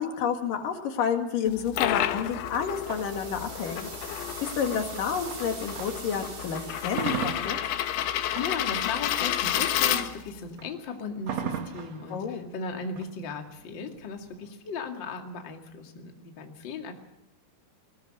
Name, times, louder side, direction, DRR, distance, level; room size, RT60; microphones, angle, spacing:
voice 1, 0.0-3.9 4.6-7.6 12.1-12.5, left 7 dB, 60° left, 5 dB, 3.3 m, -30 dB
sound 1, 1.5-10.5, left 11 dB, 75° left, 3.1 m, -31 dB
sound 2, 2.0-6.2 6.6-14.5, right 7 dB, 65° right, 1.6 m, -39 dB
sound 3, 2.5-7.5, right 5 dB, 50° right, 4.5 m, -43 dB
voice 2, 8.3-16.9, left 4 dB, 35° left, 3 dB, 2.2 m, -36 dB
21.5 x 19.0 x 7.6 m, 0.85 s
omnidirectional pair, 4.8 m